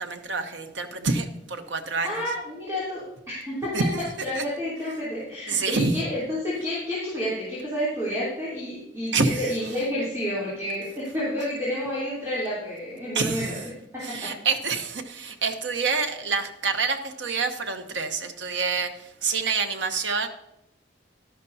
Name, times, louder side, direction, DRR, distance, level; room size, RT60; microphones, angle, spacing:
voice 1, 0.0-2.2 3.7-4.0 4.3-4.4 5.5-6.0 9.1-9.5 13.1-13.6 14.0-20.3, right 4 dB, 85° right, 7 dB, 0.9 m, -27 dB
voice 2, 2.0-3.7 4.2-13.5, equal, 15° right, -10 dB, 3.1 m, -30 dB
12.0 x 11.5 x 2.7 m, 0.83 s
head